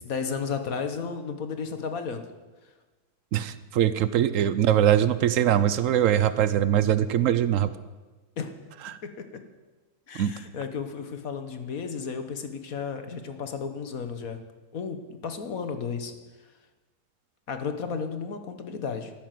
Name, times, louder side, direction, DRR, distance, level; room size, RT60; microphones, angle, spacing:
voice 1, 0.0-2.3 8.4-8.5 9.0-9.4 10.1-14.4 14.7-16.2 17.5-19.1, left 5 dB, 55° left, 8 dB, 1.5 m, -33 dB
voice 2, 3.3-7.7 10.1-10.3, right 10 dB, 70° right, 14 dB, 0.7 m, -22 dB
13.5 x 10.5 x 7.7 m, 1.2 s
omnidirectional pair, 1.9 m